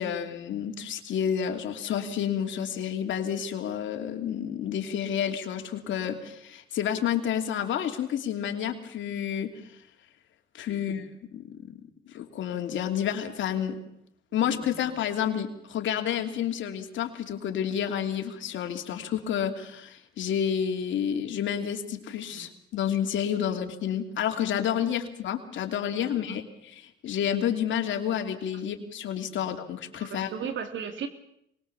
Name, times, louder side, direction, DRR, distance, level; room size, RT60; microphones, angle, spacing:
voice 1, 0.0-9.5 10.5-11.1 11.3-11.7 12.1-13.8 14.3-30.3, left 9 dB, 75° left, 5 dB, 3.0 m, -30 dB
voice 2, 10.7-11.1 14.7-14.8 18.8-19.0 22.3-22.5 23.4-23.5 29.3-29.5 30.0-31.1, right 7 dB, 70° right, 8 dB, 3.3 m, -37 dB
24.0 x 21.0 x 7.1 m, 0.76 s
cardioid pair, 90°, 20 cm